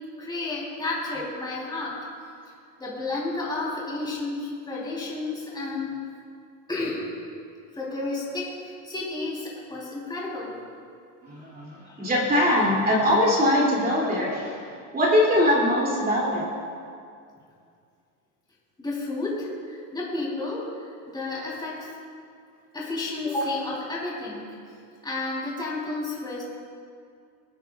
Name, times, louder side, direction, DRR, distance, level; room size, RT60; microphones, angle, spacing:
voice 1, 0.2-2.0 2.8-6.0 6.7-7.1 7.7-10.6 11.8-12.0 18.8-21.9 22.7-24.8 25.0-26.4, left 2 dB, 10° left, -5 dB, 3.3 m, -31 dB
voice 2, 11.2-16.5, left 1 dB, 20° right, -4 dB, 2.6 m, -22 dB
24.5 x 9.5 x 2.4 m, 2.3 s
supercardioid pair, 135°, 44 cm